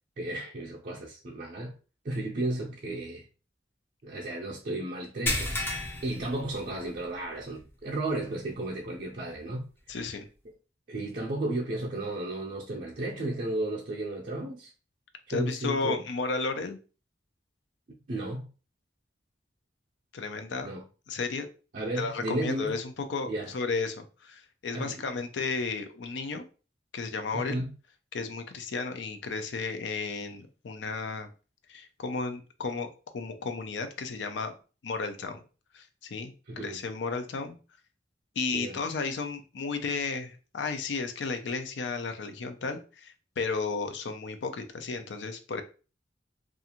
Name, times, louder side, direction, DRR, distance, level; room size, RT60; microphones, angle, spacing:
voice 1, 0.2-1.8 2.0-3.3 4.0-9.7 10.9-14.7 15.3-16.0 18.1-18.5 20.7-20.8 21.7-22.7 23.3-23.5 24.7-25.0 27.3-27.8 36.5-36.8 38.5-38.8, right 1 dB, 45° right, 0.5 m, -34 dB
sound 1, 5.3-7.1 7.5-7.7 8.2-8.3 9.9-10.0, left 1 dB, 10° left, 0.4 m, -32 dB
voice 2, 9.9-10.3 15.3-16.8 20.1-20.7 21.1-21.5 21.9-26.4 26.9-27.5 28.1-31.3 31.7-32.9 33.1-34.5 34.8-35.4 35.7-36.3 36.6-37.6 38.4-45.6, left 4 dB, 75° left, 0.4 m, -33 dB
2.4 x 2.4 x 2.8 m
head